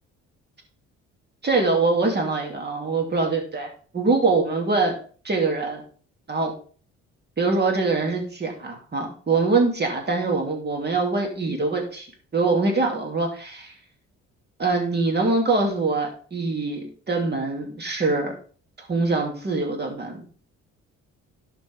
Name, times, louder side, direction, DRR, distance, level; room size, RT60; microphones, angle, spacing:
voice 1, 1.4-3.7 3.9-4.9 5.2-5.8 6.3-6.5 7.4-12.1 12.3-13.7 14.6-18.3 18.9-20.2, right 3 dB, 35° right, 2 dB, 2.9 m, -23 dB
12.0 x 5.1 x 3.6 m, 0.42 s
cardioid pair, 90°, 30 cm